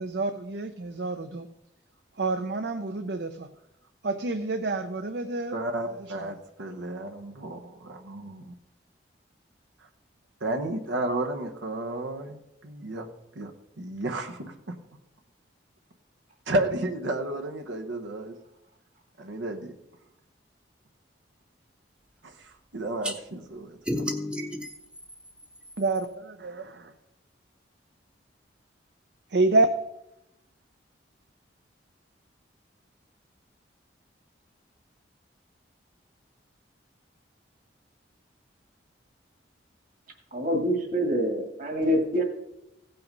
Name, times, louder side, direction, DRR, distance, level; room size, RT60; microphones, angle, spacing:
voice 1, 0.0-1.5 2.2-3.5 4.0-5.5 6.2-6.3 25.8-26.9 29.3-29.7, right 2 dB, 60° right, 0.6 m, -28 dB
voice 2, 5.5-8.5 10.4-13.1 13.3-13.5 13.8-14.8 16.5-18.4 19.2-19.8 22.2-24.2, right 1 dB, 85° right, 1.0 m, -32 dB
sound 1, 23.0-23.2 23.9-26.1, left 1 dB, 5° right, 0.7 m, -33 dB
voice 3, 40.3-42.2, equal, 45° right, 1.9 m, -26 dB
16.0 x 5.7 x 5.3 m
head